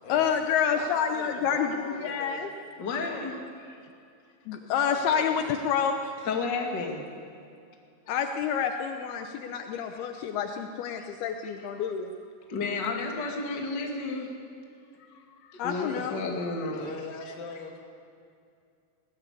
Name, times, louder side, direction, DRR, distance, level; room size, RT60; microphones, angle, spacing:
voice 1, 0.1-2.5 4.5-6.0 8.1-12.1 15.6-16.2, left 7 dB, 80° left, 6 dB, 2.8 m, -28 dB
voice 2, 0.7-2.5 2.9-3.3 4.6-6.0 16.6-17.8, left 4 dB, 60° left, 2 dB, 3.9 m, -42 dB
voice 3, 2.8-3.4 6.2-7.0 8.1-8.2 9.7-10.0 11.0-11.1 12.5-14.3 15.4-16.9, left 3 dB, 30° left, 1 dB, 2.5 m, -32 dB
21.5 x 19.0 x 8.3 m, 2.4 s
omnidirectional pair, 4.6 m